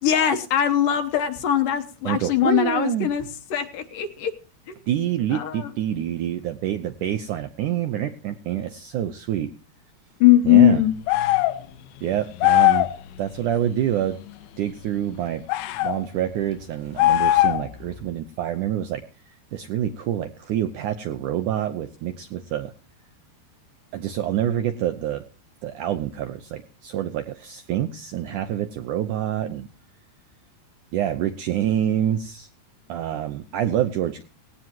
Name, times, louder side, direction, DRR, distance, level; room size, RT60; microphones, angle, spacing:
voice 1, 0.0-4.3 4.7-4.8 5.3-5.7 10.2-10.9, left 12 dB, 70° left, 8 dB, 2.4 m, -20 dB
voice 2, 2.0-3.1 4.9-9.5 10.4-10.8 12.0-12.9 13.2-14.2 14.6-15.4 15.8-19.0 19.5-22.7 23.9-25.2 25.6-29.7 30.9-32.5 32.9-34.2, right 11 dB, 75° right, 10 dB, 1.8 m, -26 dB
sound 1, 11.1-11.6 12.4-13.0 15.5-16.0 17.0-17.7, left 16 dB, 85° left, 2.9 m, -19 dB
19.0 x 17.0 x 2.9 m, 0.34 s
omnidirectional pair, 4.6 m